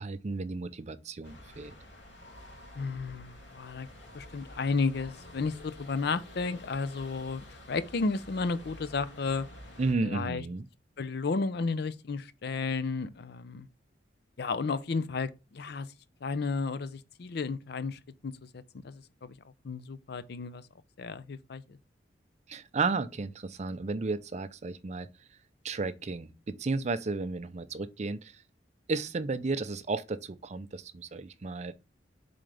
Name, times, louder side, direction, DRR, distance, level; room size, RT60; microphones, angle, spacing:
voice 1, 0.0-1.7 9.8-10.7 22.5-25.1 25.6-28.4 28.9-31.7, right 3 dB, 40° right, 0.5 m, -33 dB
sound 1, 1.2-9.9, left 1 dB, 85° left, 2.2 m, -49 dB
voice 2, 2.8-3.9 4.1-9.5 10.0-10.4 11.0-13.7 14.4-15.9 16.2-19.4 19.6-20.6 21.0-21.8, left 4 dB, 60° left, 0.5 m, -33 dB
7.4 x 3.9 x 3.3 m
head